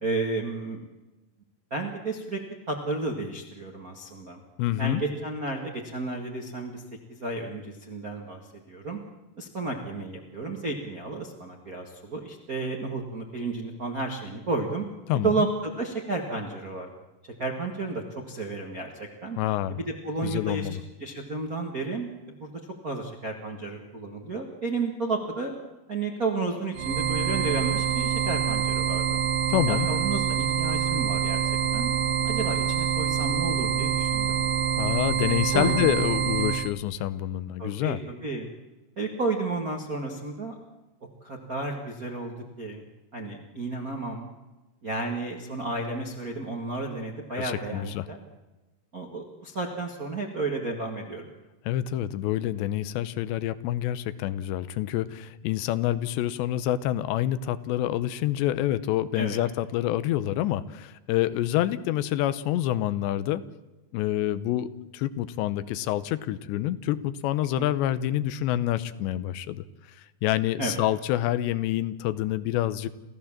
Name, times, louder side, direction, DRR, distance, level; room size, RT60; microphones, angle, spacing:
voice 1, 0.0-0.8 1.7-2.4 2.7-4.4 4.8-6.8 7.1-8.4 8.7-9.0 9.4-14.8 15.2-16.9 17.4-19.4 19.7-20.7 21.0-22.1 22.4-22.5 22.8-25.6 25.9-29.2 29.7-31.4 31.7-31.9 32.2-34.4 35.5-35.9 37.6-38.5 39.0-40.6 41.2-42.8 43.1-44.3 44.8-48.2 48.9-51.3 59.2-59.4 67.6-67.7 70.6-70.8, right 3 dB, 55° right, 1 dB, 1.0 m, -32 dB
voice 2, 4.6-5.0 15.1-15.5 19.4-19.8 20.2-20.8 29.5-29.9 34.8-38.0 47.4-48.1 51.7-63.4 63.9-69.6 70.2-72.9, left 13 dB, 90° left, 15 dB, 3.1 m, -27 dB
sound 1, 26.7-36.7, right 8 dB, 80° right, 1.6 m, -26 dB
29.0 x 14.5 x 7.4 m, 1.1 s
omnidirectional pair, 4.9 m